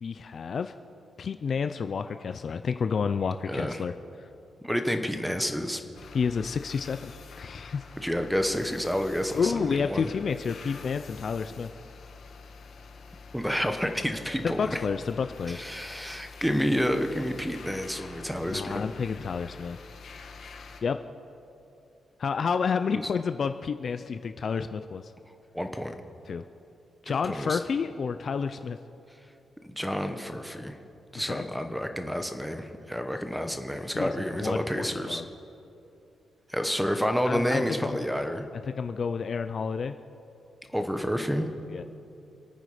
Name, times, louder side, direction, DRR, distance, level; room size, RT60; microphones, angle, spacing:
voice 1, 0.0-0.7 1.2-3.9 4.2-4.3 6.1-7.8 9.3-11.7 14.4-15.6 18.4-19.8 20.8-21.0 22.2-25.1 26.3-26.4 27.0-28.8 31.2-31.5 33.9-35.2 37.2-38.1 38.5-40.0 41.7-41.8, left 6 dB, 45° left, 9 dB, 0.4 m, -30 dB
voice 2, 3.5-3.8 4.6-5.8 8.0-10.1 13.3-14.8 15.5-18.8 22.9-23.1 25.5-25.9 27.2-27.6 29.8-30.8 31.1-35.2 36.5-38.5 40.7-41.5, equal, ahead, 6 dB, 1.0 m, -29 dB
sound 1, 5.9-20.8, left 4 dB, 65° left, 1.5 m, -47 dB
27.0 x 9.2 x 5.0 m, 2.7 s
wide cardioid pair, 145°, 0 cm